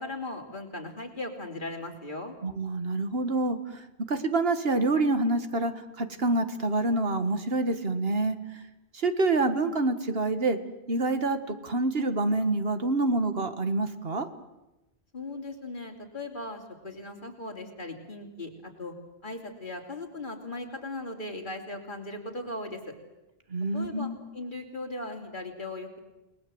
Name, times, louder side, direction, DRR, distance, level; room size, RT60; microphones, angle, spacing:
voice 1, 0.0-2.3 15.1-18.9 19.2-22.9 23.7-26.0, left 2 dB, 50° left, 3 dB, 3.4 m, -38 dB
voice 2, 2.4-8.6 8.9-10.6 10.9-14.3 23.5-24.2, right 2 dB, 65° right, 9 dB, 1.8 m, -27 dB
30.0 x 20.0 x 7.9 m, 0.99 s
omnidirectional pair, 1.1 m